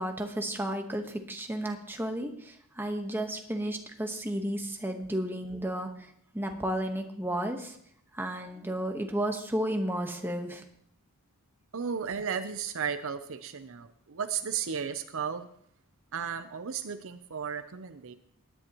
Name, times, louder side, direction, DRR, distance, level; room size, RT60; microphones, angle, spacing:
voice 1, 0.0-6.1 6.3-7.8 8.1-10.6, right 1 dB, 10° right, 4 dB, 1.2 m, -33 dB
voice 2, 11.7-15.5 16.1-18.1, right 7 dB, 65° right, 11 dB, 0.7 m, -34 dB
18.0 x 10.5 x 3.0 m, 0.67 s
head